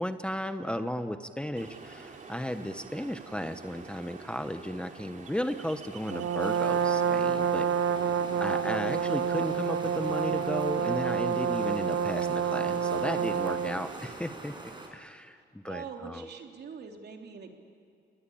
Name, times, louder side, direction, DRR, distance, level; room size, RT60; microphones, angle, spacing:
voice 1, 0.0-8.0 8.4-14.5 14.9-16.3, equal, 5° left, 9 dB, 1.0 m, -35 dB
Ocean, 1.6-14.1, right 4 dB, 40° right, 2.9 m, -48 dB
Brass instrument, 6.1-13.9, right 7 dB, 70° right, 1.1 m, -28 dB
sound 1, 6.4-14.9, right 2 dB, 25° right, 5.6 m, -44 dB
voice 2, 15.6-17.5, right 6 dB, 55° right, 3 dB, 3.3 m, -43 dB
29.5 x 20.5 x 8.7 m, 2.3 s
cardioid pair, 90°, 20 cm